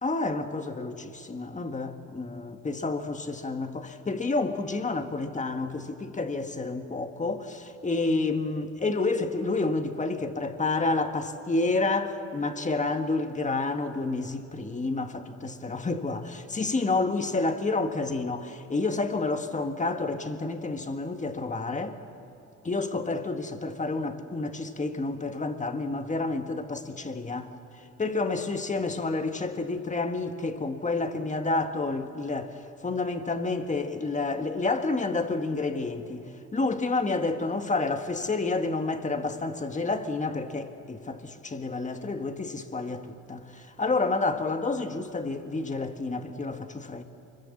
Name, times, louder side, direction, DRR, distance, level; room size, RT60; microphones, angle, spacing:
voice 1, 0.0-22.0 22.6-27.5 28.0-32.6 32.8-36.2 36.5-47.0, left 3 dB, 25° left, 1.7 m, -29 dB
25.0 x 22.5 x 7.3 m
cardioid pair, 90°, 30 cm